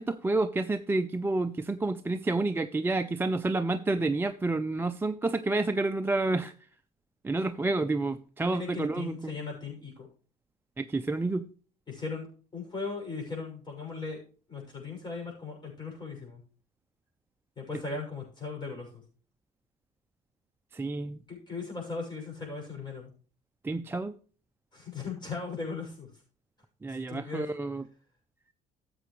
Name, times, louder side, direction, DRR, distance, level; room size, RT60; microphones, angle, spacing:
voice 1, 0.0-6.5 7.2-9.3 10.8-11.5 20.7-21.2 23.6-24.1 26.8-27.8, right 2 dB, 15° right, 7 dB, 0.4 m, -29 dB
voice 2, 8.4-10.1 11.9-12.3 12.5-14.2 14.5-16.4 17.6-19.0 21.3-23.1 24.7-26.1 26.9-27.4, left 4 dB, 25° left, 1 dB, 6.2 m, -38 dB
13.5 x 7.7 x 3.1 m, 0.39 s
cardioid pair, 110°, 17 cm